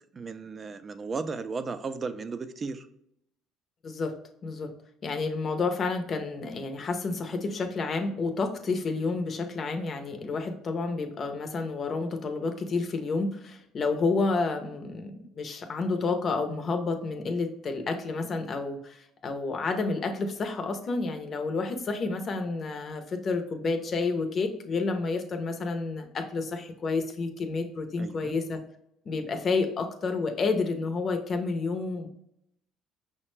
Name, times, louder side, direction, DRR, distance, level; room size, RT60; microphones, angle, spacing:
voice 1, 0.1-2.9 28.0-28.3, right 4 dB, 30° right, 10 dB, 0.4 m, -35 dB
voice 2, 3.8-4.1 4.4-4.7 5.0-28.6 29.1-32.1, left 3 dB, 40° left, 5 dB, 0.6 m, -30 dB
5.6 x 2.1 x 3.1 m, 0.76 s
supercardioid pair, 95°, 0 cm